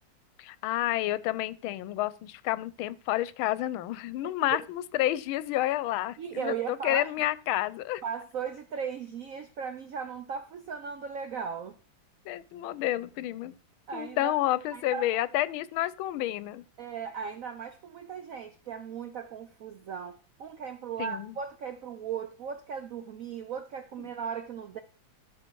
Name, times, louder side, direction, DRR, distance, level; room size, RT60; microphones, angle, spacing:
voice 1, 0.4-8.0 12.3-13.5 13.9-16.6 21.0-21.3, left 15 dB, 90° left, 1.4 m, -30 dB
voice 2, 6.2-7.1 8.0-11.8 13.9-14.3 14.7-15.0 16.8-24.8, right 7 dB, 75° right, 0.7 m, -37 dB
13.0 x 5.7 x 4.5 m
omnidirectional pair, 2.2 m